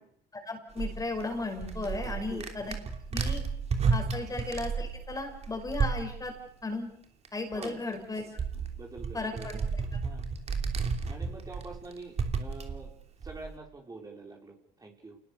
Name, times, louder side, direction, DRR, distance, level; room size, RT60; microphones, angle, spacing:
voice 1, 0.3-2.7 3.1-3.4 3.9-6.3 6.6-6.9 7.3-8.2 9.1-9.6 9.9-10.0, left 3 dB, 20° left, 4 dB, 5.6 m, -35 dB
sound 1, 0.8-6.4 7.2-7.3 7.5-13.6, right 5 dB, 40° right, 3.1 m, -33 dB
voice 2, 2.0-2.5 4.2-4.3 7.5-7.8 8.5-9.7 10.0-10.3 11.1-12.9 13.2-15.2, right 3 dB, 20° right, 1 dB, 4.6 m, -46 dB
28.5 x 20.0 x 6.7 m, 0.70 s
cardioid pair, 110°, 17 cm